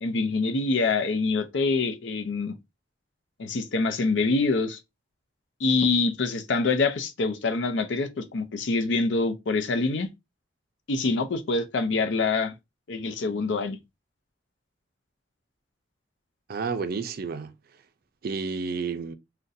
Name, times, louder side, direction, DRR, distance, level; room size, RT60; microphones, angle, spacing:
voice 1, 0.0-2.6 3.4-4.8 5.6-10.1 10.9-12.5 12.9-13.8, left 3 dB, 75° left, 0.5 m, -25 dB
voice 2, 16.5-17.5 18.2-19.1, right 5 dB, 55° right, 0.4 m, -30 dB
3.8 x 2.2 x 2.6 m
head